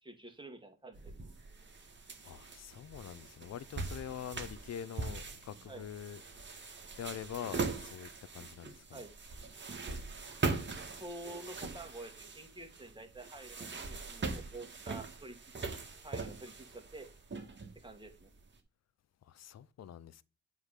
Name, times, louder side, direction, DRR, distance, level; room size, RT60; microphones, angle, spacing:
voice 1, 0.0-1.1 5.7-5.9 8.9-9.1 11.0-15.4 16.0-17.1 17.8-18.3, right 2 dB, 15° right, 2.1 m, -48 dB
sound 1, 0.9-18.4, right 3 dB, 35° right, 1.8 m, -41 dB
voice 2, 2.2-9.0 19.2-20.2, left 9 dB, 60° left, 0.6 m, -45 dB
8.2 x 3.3 x 5.7 m
cardioid pair, 65°, 30 cm